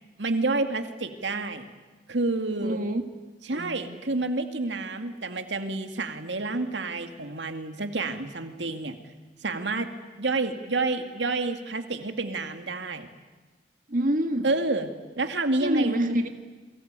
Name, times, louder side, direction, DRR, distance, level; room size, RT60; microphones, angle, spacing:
voice 1, 0.2-1.7 2.1-2.8 3.5-9.0 9.4-9.9 10.2-13.1 14.4-14.9 15.2-16.2, right 2 dB, 85° right, 7 dB, 2.3 m, -29 dB
voice 2, 2.6-3.0 3.5-4.0 13.9-14.5 15.6-16.3, right 1 dB, 50° right, 6 dB, 1.9 m, -27 dB
29.0 x 23.0 x 9.0 m, 1.3 s
head